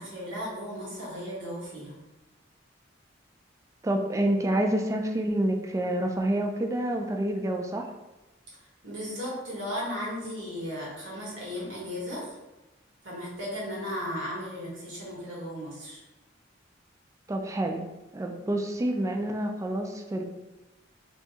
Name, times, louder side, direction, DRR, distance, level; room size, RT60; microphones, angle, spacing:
voice 1, 0.0-2.0 8.8-12.4 13.0-16.0, equal, 75° right, -5 dB, 1.3 m, -35 dB
voice 2, 3.8-7.9 17.3-17.8 18.1-20.2, right 1 dB, 15° right, 3 dB, 0.3 m, -28 dB
2.8 x 2.6 x 3.4 m, 1.0 s
head